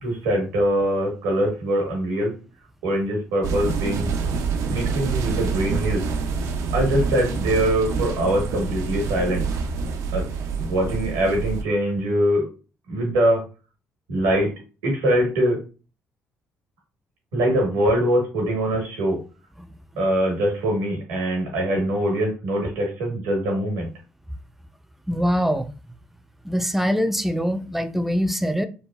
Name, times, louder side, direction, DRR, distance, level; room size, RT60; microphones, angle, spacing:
voice 1, 0.0-2.3 2.8-4.1 4.7-6.0 6.7-9.4 10.1-10.2 10.6-12.4 12.9-13.4 14.1-14.5 14.8-15.6 17.3-19.2 19.9-23.9, right 1 dB, 85° right, 1.2 m, -23 dB
sound 1, 3.4-11.6, right 5 dB, 70° right, 0.4 m, -26 dB
voice 2, 25.1-25.7 26.4-28.7, equal, 5° right, 0.4 m, -23 dB
3.2 x 2.1 x 2.3 m
supercardioid pair, 60°, 6 cm